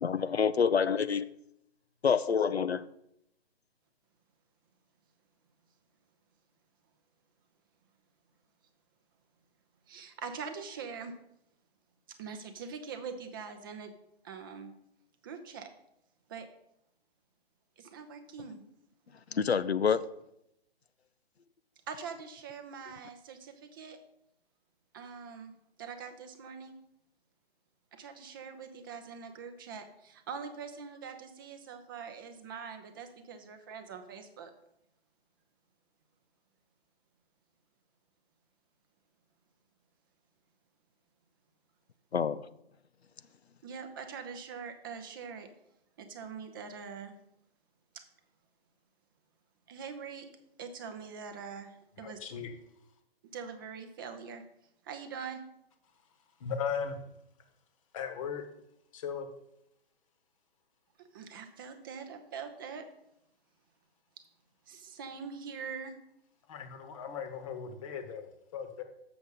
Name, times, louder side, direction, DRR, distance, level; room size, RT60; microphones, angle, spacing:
voice 1, 0.0-1.3 2.0-2.9 19.3-20.0 42.1-42.4, left 6 dB, 90° left, 0.5 m, -27 dB
voice 2, 9.9-11.1 12.2-13.9 14.2-14.7 15.2-15.7 16.3-16.5 17.8-18.6 21.9-24.0 24.9-25.5 25.8-26.8 27.9-34.5 43.6-45.5 46.0-47.2 47.9-48.0 49.7-50.3 50.6-52.2 53.3-54.4 54.8-55.4 61.0-62.9 64.7-66.0, right 6 dB, 20° right, 0.5 m, -43 dB
voice 3, 52.0-52.5 56.4-57.0 57.9-58.4 58.9-59.3 66.5-68.8, left 7 dB, 30° left, 1.0 m, -37 dB
7.0 x 6.1 x 5.3 m
figure-of-eight pair, 130°, 31 cm